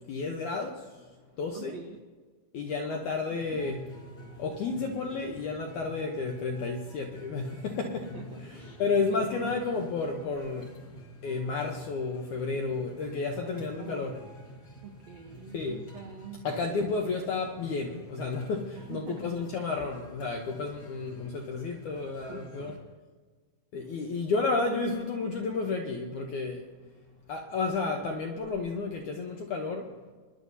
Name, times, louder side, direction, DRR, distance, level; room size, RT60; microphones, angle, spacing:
voice 1, 0.1-0.9 1.4-1.8 2.5-3.8 4.4-8.0 8.8-10.7 11.2-14.1 15.5-15.8 16.4-22.7 23.7-26.6 27.3-29.9, left 4 dB, 75° left, 1 dB, 1.8 m, -31 dB
voice 2, 1.5-2.0 2.8-3.3 3.5-3.8 8.0-8.8 9.1-9.6 13.3-14.3 14.8-16.9 18.7-19.8 20.8-21.0 22.3-22.8, right 5 dB, 75° right, 1 dB, 1.5 m, -45 dB
sound 1, 3.4-22.8, equal, 45° left, 1.3 m, -49 dB
24.5 x 11.0 x 2.8 m, 1.4 s
omnidirectional pair, 4.6 m